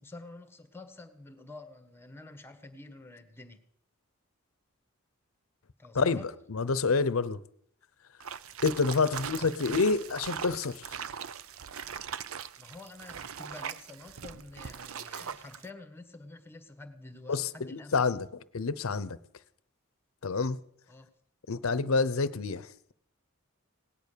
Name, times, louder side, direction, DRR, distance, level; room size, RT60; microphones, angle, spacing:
voice 1, 0.0-3.6 5.8-6.3 8.8-9.8 12.6-18.2 20.9-21.1, left 2 dB, 10° left, 9 dB, 1.4 m, -48 dB
voice 2, 5.9-7.4 8.6-10.9 17.3-18.3 18.5-19.2 20.2-20.6 21.5-22.9, left 4 dB, 75° left, 17 dB, 0.7 m, -28 dB
sound 1, 8.2-15.7, right 7 dB, 70° right, 0.6 m, -40 dB
17.5 x 10.5 x 6.8 m, 0.70 s
head